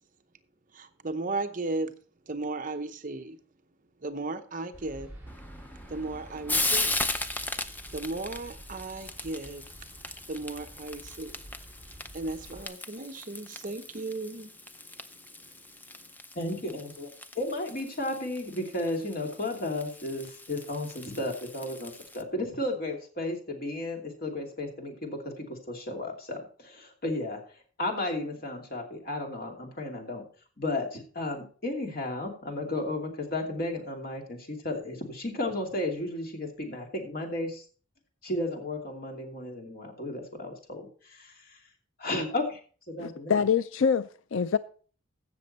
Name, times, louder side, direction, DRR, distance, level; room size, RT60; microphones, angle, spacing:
voice 1, 0.7-1.9 2.3-3.4 4.0-5.1 5.9-7.0 7.9-9.7 10.3-11.4 12.1-14.5, right 2 dB, 40° right, 0.8 m, -35 dB
sound 1, 4.7-12.7, right 1 dB, 10° right, 4.8 m, -49 dB
Frying (food), 5.3-22.2, left 2 dB, 10° left, 0.5 m, -37 dB
voice 2, 16.3-17.1 17.3-30.2 30.6-37.6 38.2-41.6 42.0-42.6 42.9-43.4, left 2 dB, 45° left, 2.7 m, -34 dB
voice 3, 43.0-44.6, left 6 dB, 75° left, 0.4 m, -25 dB
15.0 x 6.8 x 4.2 m
head